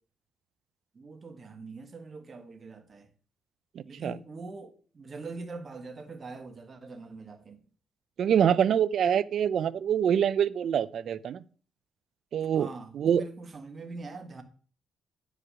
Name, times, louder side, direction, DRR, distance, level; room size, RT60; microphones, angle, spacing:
voice 1, 0.9-3.1 3.9-7.6 12.5-14.4, right 3 dB, 35° right, 1.5 m, -43 dB
voice 2, 3.8-4.2 8.2-11.4 12.3-12.7 13.0-13.2, right 8 dB, 65° right, 0.4 m, -25 dB
9.9 x 4.9 x 6.2 m
cardioid pair, 90°, 0 cm